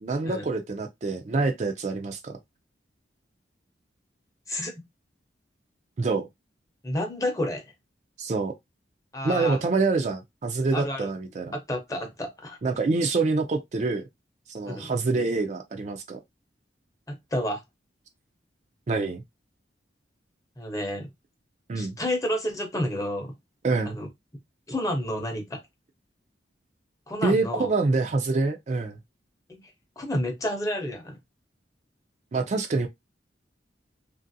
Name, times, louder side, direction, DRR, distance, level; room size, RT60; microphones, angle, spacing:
voice 1, 0.0-2.4 6.0-6.3 8.2-8.5 9.2-11.5 12.6-14.0 14.5-16.2 18.9-19.2 21.7-22.0 23.6-24.0 27.2-29.0 32.3-32.9, right 3 dB, 40° right, 0.4 m, -26 dB
voice 2, 6.8-7.6 9.1-9.6 10.7-11.1 11.7-12.6 14.6-14.9 17.1-17.6 20.6-21.1 21.7-23.3 23.9-24.1 24.7-25.6 27.1-27.7 29.6-29.7 30.0-31.1, left 1 dB, 20° left, 0.7 m, -30 dB
2.9 x 2.5 x 2.6 m
head